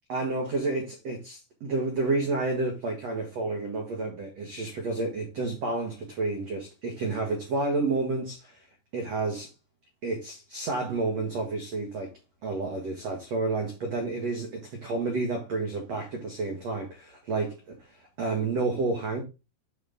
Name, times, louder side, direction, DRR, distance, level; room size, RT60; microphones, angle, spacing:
voice 1, 0.1-8.6 8.9-9.5 10.0-12.1 12.4-17.8 18.2-19.2, right 3 dB, 70° right, 1.5 m, -30 dB
11.0 x 4.1 x 3.6 m
omnidirectional pair, 5.5 m